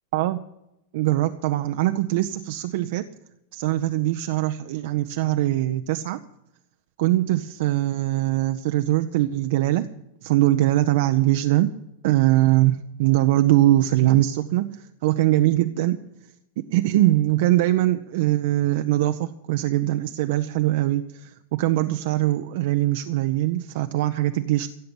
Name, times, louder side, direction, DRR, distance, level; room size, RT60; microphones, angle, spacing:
voice 1, 0.9-3.1 3.5-6.2 7.0-9.9 10.2-11.7 12.0-16.0 16.7-24.7, right 15 dB, 50° right, 8 dB, 0.6 m, -22 dB
16.0 x 7.9 x 8.7 m, 0.87 s
figure-of-eight pair, 90°, 0 cm